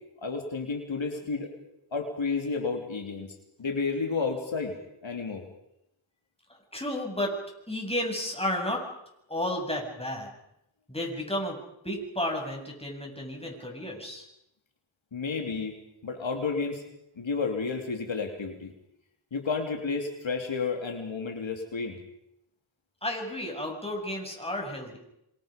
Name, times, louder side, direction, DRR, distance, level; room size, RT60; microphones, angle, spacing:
voice 1, 0.2-1.5 1.9-3.3 3.6-4.7 5.0-5.4 15.1-15.7 16.0-16.8 17.2-18.7 19.3-22.0, left 4 dB, 80° left, 3 dB, 3.3 m, -31 dB
voice 2, 6.7-7.3 7.7-8.9 9.3-10.3 10.9-11.6 11.8-14.3 23.0-25.0, left 1 dB, 15° left, 1 dB, 7.7 m, -32 dB
27.0 x 26.5 x 5.3 m, 0.80 s
wide cardioid pair, 65°, 45 cm